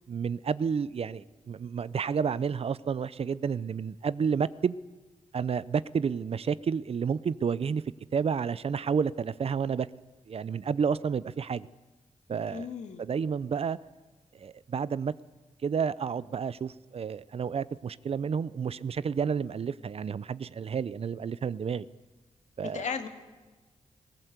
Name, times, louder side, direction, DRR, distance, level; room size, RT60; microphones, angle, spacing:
voice 1, 0.1-4.8 5.3-7.8 8.1-9.9 10.3-11.7 12.3-12.7 13.0-13.8 14.3-15.1 15.6-21.9 22.6-22.9, right 6 dB, 55° right, 18 dB, 0.5 m, -30 dB
voice 2, 12.5-13.0 22.6-23.1, left 6 dB, 75° left, 7 dB, 1.9 m, -35 dB
19.0 x 17.0 x 8.2 m, 1.3 s
cardioid pair, 90°, 12 cm